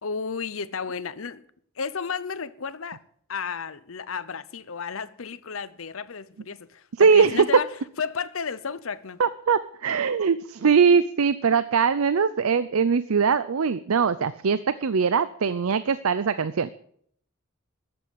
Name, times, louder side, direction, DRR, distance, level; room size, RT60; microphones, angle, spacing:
voice 1, 0.0-1.4 1.8-3.0 3.3-7.7 8.0-9.2, left 5 dB, 70° left, 0.8 m, -32 dB
voice 2, 7.0-7.5 9.2-16.7, right 6 dB, 85° right, 0.6 m, -21 dB
14.0 x 7.9 x 8.8 m
head